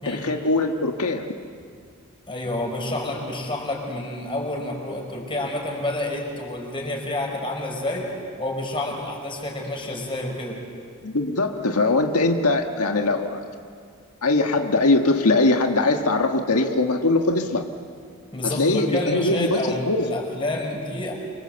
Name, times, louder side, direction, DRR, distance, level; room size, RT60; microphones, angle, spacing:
voice 1, 0.0-1.4 11.0-13.4 14.2-17.7 18.4-20.1, left 2 dB, 85° left, 3 dB, 1.6 m, -21 dB
voice 2, 2.3-8.1 8.4-10.6 18.3-21.1, left 1 dB, 25° left, 0 dB, 5.6 m, -29 dB
28.5 x 25.0 x 8.1 m, 2.2 s
head